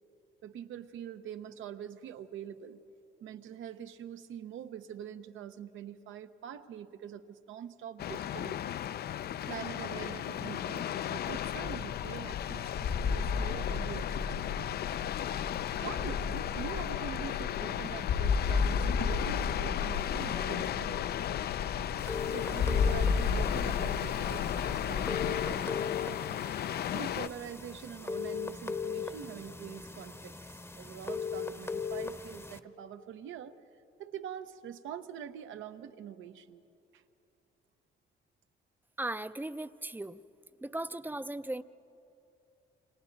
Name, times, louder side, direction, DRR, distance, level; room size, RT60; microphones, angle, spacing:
voice 1, 0.4-2.8 3.2-8.7 9.4-14.8 15.8-21.5 22.3-26.2 26.9-33.6 34.0-36.6 36.9-37.0, right 9 dB, 80° right, 9 dB, 0.9 m, -44 dB
sound 1, 8.0-27.3, left 11 dB, 55° left, 0.4 m, -35 dB
sound 2, 11.2-25.6, left 5 dB, 70° left, 2.1 m, -34 dB
sound 3, 22.0-32.6, left 5 dB, 15° left, 0.8 m, -39 dB
voice 2, 39.0-40.2 40.6-41.6, right 1 dB, 10° right, 13 dB, 0.5 m, -37 dB
29.0 x 25.0 x 4.0 m, 2.8 s
cardioid pair, 90°, 20 cm